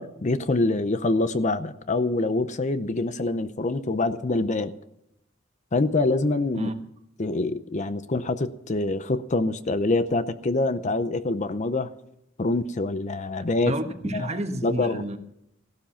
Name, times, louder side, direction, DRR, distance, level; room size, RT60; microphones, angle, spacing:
voice 1, 0.0-4.7 5.7-6.7 7.2-11.9 12.4-13.7 14.1-14.3 14.6-15.0, left 2 dB, 40° left, 0.7 m, -25 dB
voice 2, 13.7-15.2, right 1 dB, 35° right, 1.4 m, -30 dB
16.0 x 12.0 x 5.8 m
head